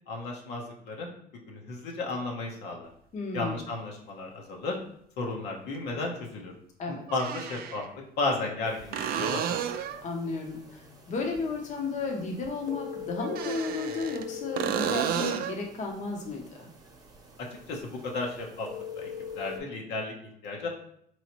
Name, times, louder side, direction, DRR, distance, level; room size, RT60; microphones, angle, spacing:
voice 1, 0.1-1.1 1.5-2.9 3.3-4.8 5.2-6.5 6.9-7.8 8.2-9.4 17.7-18.7 18.9-19.1 19.3-20.7, left 3 dB, 80° left, 0 dB, 0.9 m, -33 dB
voice 2, 3.1-3.6 6.8-7.0 10.0-16.7, left 3 dB, 45° left, 1 dB, 0.7 m, -33 dB
sound 1, 3.6-3.7 5.7-5.8 7.1-7.9 8.9-10.1 13.2-14.3 14.6-15.6 19.3-19.4, right 9 dB, 60° right, 0.4 m, -31 dB
sound 2, 8.6-19.6, left 6 dB, 20° right, 0.9 m, -43 dB
4.0 x 3.1 x 2.9 m, 0.71 s
cardioid pair, 110°, 17 cm